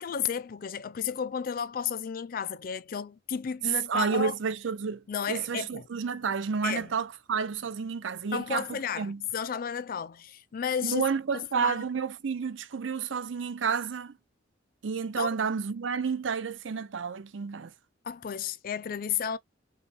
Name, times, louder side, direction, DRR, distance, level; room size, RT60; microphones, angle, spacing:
voice 1, 0.0-4.3 5.1-5.9 6.6-6.9 8.3-11.0 11.3-11.8 15.2-15.3 18.0-19.4, left 7 dB, 50° left, 0.4 m, -33 dB
voice 2, 3.9-9.2 10.8-14.2 14.8-17.7, right 6 dB, 85° right, 0.6 m, -30 dB
5.6 x 2.1 x 3.1 m
head